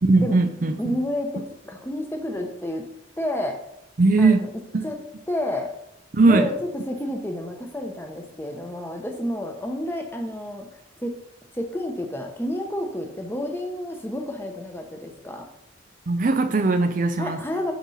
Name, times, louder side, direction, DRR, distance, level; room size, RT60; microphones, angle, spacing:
voice 1, 0.0-1.0 4.0-4.5 4.7-4.9 6.1-6.5 16.1-17.4, right 3 dB, 45° right, 8 dB, 0.5 m, -19 dB
voice 2, 0.8-2.9 3.2-3.6 4.2-4.5 4.8-5.0 5.3-5.7 6.2-10.7 11.0-11.1 11.5-15.5 17.2-17.7, left 1 dB, 10° left, 3 dB, 0.9 m, -30 dB
7.4 x 4.4 x 5.6 m, 0.80 s
head